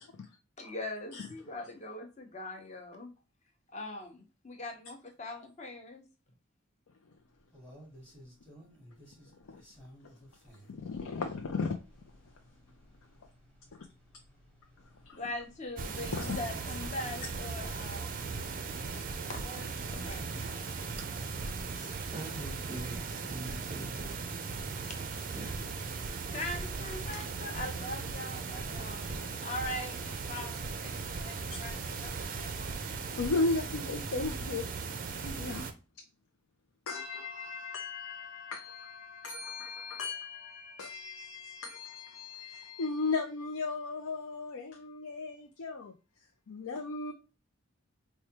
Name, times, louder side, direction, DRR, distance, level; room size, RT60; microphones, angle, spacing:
voice 1, 0.6-3.1 3.7-6.0 15.1-18.2 18.9-19.0 19.3-20.6 24.9-25.0 26.3-32.8, left 1 dB, 35° left, 0.8 m, -42 dB
sound 1, 7.1-20.3, equal, 5° left, 1.0 m, -57 dB
voice 2, 10.7-11.8 15.0-15.2 16.1-16.4 21.8-22.1 31.5-31.6 33.2-35.7 36.9-45.9 46.5-47.1, left 3 dB, 90° left, 0.5 m, -36 dB
sound 2, 15.8-35.7, right 4 dB, 40° right, 0.4 m, -38 dB
voice 3, 22.1-24.7 25.3-25.6, right 1 dB, 15° right, 0.7 m, -44 dB
4.7 x 2.2 x 2.8 m
head